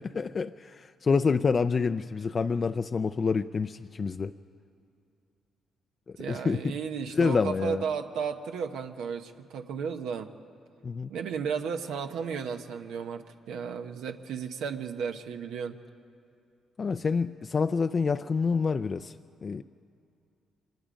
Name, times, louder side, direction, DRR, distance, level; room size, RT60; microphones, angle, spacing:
voice 1, 0.0-4.3 6.1-6.6 7.1-7.8 10.8-11.1 16.8-19.1 19.4-19.6, left 5 dB, 40° left, 9 dB, 0.4 m, -27 dB
voice 2, 6.2-10.3 11.1-15.8, right 6 dB, 85° right, 6 dB, 0.9 m, -34 dB
25.5 x 20.0 x 5.2 m, 2.5 s
cardioid pair, 90°, 0 cm